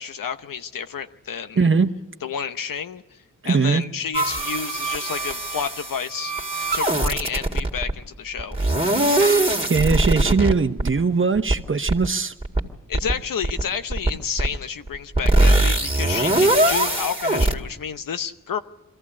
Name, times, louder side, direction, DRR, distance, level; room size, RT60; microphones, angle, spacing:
voice 1, 0.0-1.7 2.2-3.2 3.4-6.3 6.7-8.6 12.9-18.6, left 7 dB, 80° left, 10 dB, 0.9 m, -30 dB
voice 2, 1.6-1.9 3.4-3.8 9.7-12.3, right 4 dB, 40° right, 10 dB, 1.0 m, -20 dB
sound 1, 4.1-7.9 8.4-10.5 10.8-11.0 11.4-11.6 11.9-12.1 12.4-12.6 12.9-13.1 13.4-13.6 13.9-14.1 14.4-14.6 14.9-17.5, right 2 dB, 20° right, 2.1 m, -21 dB
22.0 x 14.5 x 8.5 m, 1.2 s
cardioid pair, 50°, 33 cm